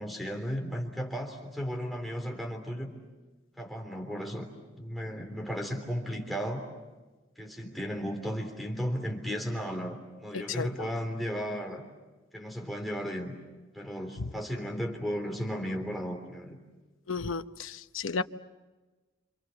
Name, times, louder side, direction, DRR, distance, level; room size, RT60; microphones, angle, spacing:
voice 1, 0.0-2.9 3.6-4.5 4.8-6.7 7.4-11.8 12.3-13.4 13.7-16.6, equal, ahead, 1 dB, 3.5 m, -35 dB
voice 2, 10.3-10.7 17.1-18.2, left 4 dB, 80° left, 10 dB, 0.9 m, -33 dB
28.5 x 27.5 x 7.1 m, 1.2 s
head